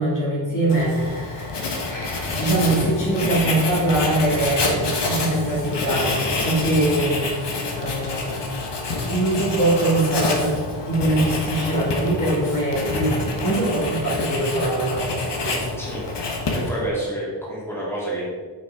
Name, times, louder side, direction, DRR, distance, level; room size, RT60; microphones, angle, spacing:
voice 1, 0.0-7.2 7.7-8.4 9.1-10.5 10.9-15.6, right 2 dB, 40° left, -6 dB, 2.3 m, -23 dB
Writing, 0.7-16.9, left 3 dB, 65° left, 1.4 m, -27 dB
voice 2, 15.8-16.1 16.5-18.3, right 1 dB, 5° left, -7 dB, 2.3 m, -28 dB
6.5 x 6.1 x 4.7 m, 1.5 s
wide cardioid pair, 170°, 45 cm